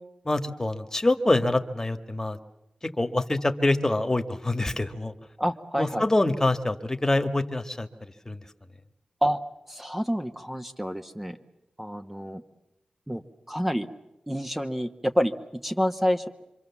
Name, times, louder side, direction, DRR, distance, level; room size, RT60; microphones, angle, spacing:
voice 1, 0.3-2.4 2.8-5.1 5.8-7.9 8.3-8.4, left 2 dB, 20° left, 8 dB, 1.7 m, -25 dB
voice 2, 5.4-6.0 9.2-9.4 9.7-11.4 11.8-12.4 13.1-13.9 14.3-16.3, equal, 10° right, 6 dB, 1.2 m, -28 dB
26.0 x 25.0 x 7.3 m, 0.91 s
wide cardioid pair, 70°, 2 cm